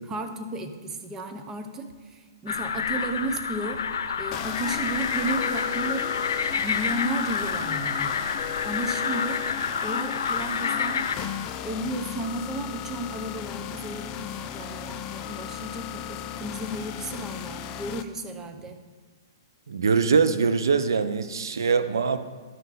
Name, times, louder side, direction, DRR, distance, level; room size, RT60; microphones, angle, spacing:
voice 1, 0.1-3.9 4.2-6.2 6.6-8.3 8.6-9.4 9.8-11.3 11.6-18.8, right 1 dB, 20° right, 7 dB, 0.8 m, -34 dB
sound 1, 2.5-11.2, left 6 dB, 80° left, 0.7 m, -28 dB
sound 2, 4.3-18.0, left 10 dB, 35° left, 0.5 m, -36 dB
voice 2, 19.7-22.2, right 5 dB, 80° right, 11 dB, 0.5 m, -23 dB
12.5 x 5.6 x 3.8 m, 1.4 s
hypercardioid pair, 130°, 2 cm